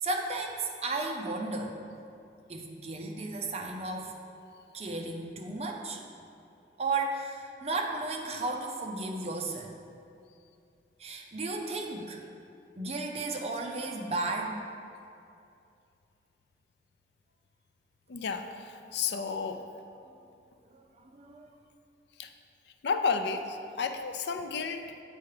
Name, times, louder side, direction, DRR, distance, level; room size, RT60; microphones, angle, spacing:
voice 1, 0.0-1.8 2.5-4.2 4.7-6.0 6.8-9.7 11.0-12.2 12.8-14.6 20.7-21.5, right 3 dB, 35° right, 1 dB, 0.6 m, -34 dB
voice 2, 18.1-19.6 22.2-22.3 22.8-25.0, left 5 dB, 70° left, 7 dB, 0.4 m, -32 dB
7.2 x 4.6 x 4.8 m, 2.5 s
head